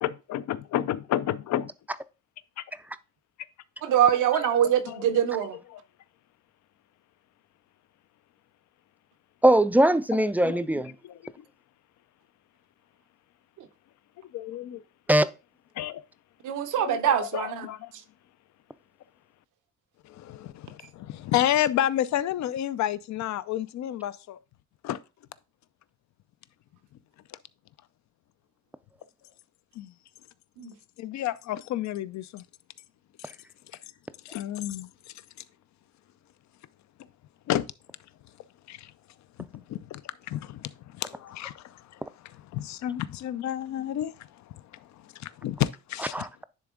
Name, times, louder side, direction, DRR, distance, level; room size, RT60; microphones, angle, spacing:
voice 1, 0.0-1.7 2.6-2.7 4.2-5.1 5.7-5.8 10.1-10.7 11.0-11.4 14.2-14.8 15.8-16.0 16.8-17.9 20.0-24.4 24.8-25.0 27.3-27.4 29.8-29.9 31.0-32.4 34.2-34.9 37.5-37.7 38.7-38.9 39.5-40.0 40.3-46.3, left 12 dB, 65° left, 0.5 m, -31 dB
voice 2, 3.8-5.6 16.4-17.7 30.6-30.7, right 10 dB, 80° right, 0.9 m, -24 dB
voice 3, 9.4-10.9 15.1-15.3 46.1-46.4, right 1 dB, 5° right, 0.4 m, -21 dB
10.0 x 3.5 x 3.7 m
cardioid pair, 90°, 30 cm